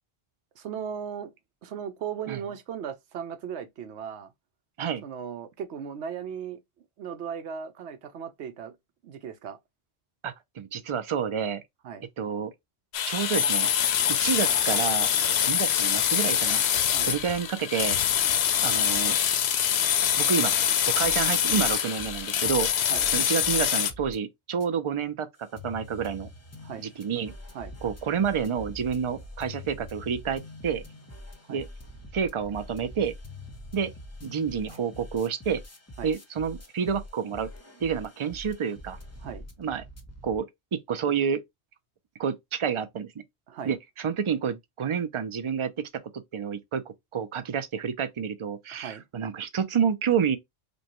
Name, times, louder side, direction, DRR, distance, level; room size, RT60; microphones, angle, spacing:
voice 1, 0.6-1.3 1.6-4.3 5.0-6.6 7.0-8.8 9.0-9.6 11.8-12.0 16.9-17.1 22.9-23.1 26.6-26.9 27.5-27.7 31.5-31.6 36.0-36.1 39.2-39.5 43.5-43.8 48.7-49.0, right 8 dB, 80° right, 1.0 m, -37 dB
voice 2, 10.2-11.6 12.2-12.5 13.1-13.7 14.2-15.1 15.5-16.6 17.0-18.0 18.6-19.2 20.2-22.7 23.1-26.3 26.8-27.3 27.8-30.8 31.5-31.7 32.1-33.1 33.7-33.9 34.2-35.6 36.0-37.5 37.8-39.0 39.6-39.8 40.2-40.5 40.7-41.4 42.2-43.1 43.6-45.9 46.3-50.4, right 7 dB, 45° right, 0.4 m, -29 dB
sound 1, 12.9-23.9, left 9 dB, 75° left, 0.8 m, -24 dB
sound 2, 21.0-24.2 24.6-24.7 25.4-40.4, left 1 dB, 15° left, 0.6 m, -45 dB
5.2 x 2.2 x 2.9 m
omnidirectional pair, 1.1 m